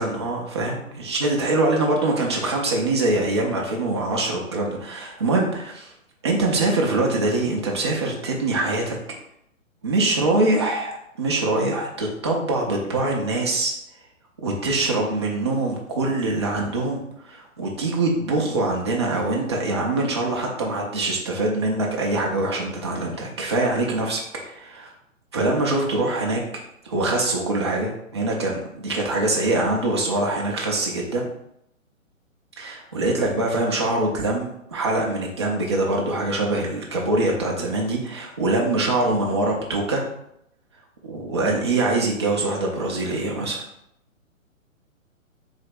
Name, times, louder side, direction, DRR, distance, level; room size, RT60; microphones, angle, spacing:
voice 1, 0.0-5.9 6.2-9.0 9.8-13.7 14.4-24.9 25.3-26.4 26.8-31.3 32.6-40.0 41.0-43.6, right 2 dB, 20° right, -1 dB, 0.4 m, -24 dB
3.3 x 2.8 x 4.1 m, 0.78 s
figure-of-eight pair, 130°, 41 cm